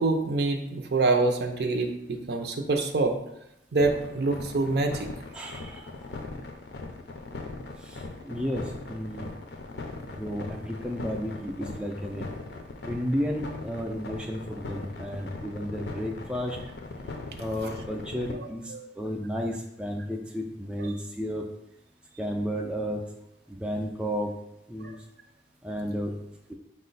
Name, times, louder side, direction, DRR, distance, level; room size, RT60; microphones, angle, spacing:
voice 1, 0.0-3.2 3.7-5.1 18.3-18.9 24.8-24.9, right 3 dB, 60° right, 5 dB, 0.5 m, -26 dB
sound 1, 3.8-18.3, left 3 dB, 65° left, 0.5 m, -39 dB
voice 2, 5.3-6.1 7.8-9.3 10.2-12.3 12.8-16.6 17.4-21.5 22.2-23.0 23.5-24.3 24.7-24.9 25.6-26.1, equal, 5° right, 0 dB, 0.3 m, -32 dB
5.4 x 2.1 x 3.9 m, 0.84 s
head